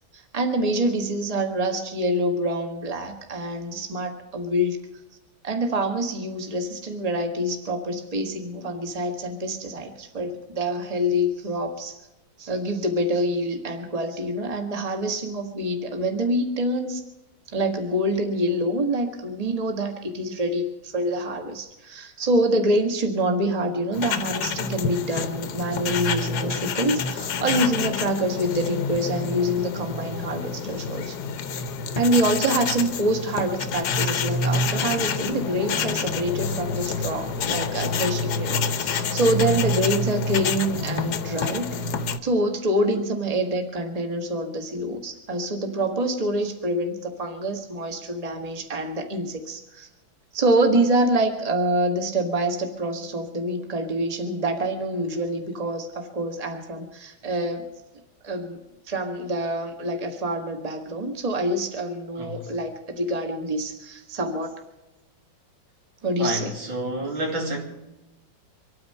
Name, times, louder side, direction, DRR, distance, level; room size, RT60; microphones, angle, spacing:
voice 1, 0.3-4.8 5.4-12.0 12.4-17.0 17.5-31.2 31.9-41.7 42.2-49.9 50.3-57.7 58.2-58.6 58.9-64.6 66.0-66.5, right 1 dB, 20° right, 1.6 m, -26 dB
sound 1, 23.9-42.2, left 4 dB, 60° left, 1.3 m, -27 dB
voice 2, 62.2-62.5 66.2-67.6, right 1 dB, 75° right, 3.6 m, -29 dB
25.5 x 9.7 x 5.6 m
omnidirectional pair, 2.1 m